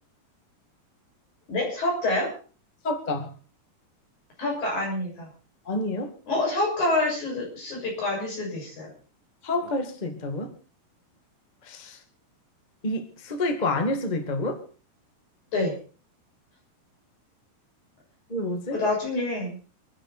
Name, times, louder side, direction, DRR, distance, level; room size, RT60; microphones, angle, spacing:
voice 1, 1.5-2.3 4.4-5.3 6.3-8.9 15.5-15.7 18.7-19.6, left 2 dB, 45° left, 0 dB, 7.9 m, -27 dB
voice 2, 2.8-3.3 5.6-6.1 9.4-10.5 11.6-12.0 12.8-14.6 18.3-18.8, left 2 dB, 60° left, 5 dB, 0.4 m, -28 dB
27.5 x 10.5 x 4.3 m, 0.38 s
omnidirectional pair, 4.9 m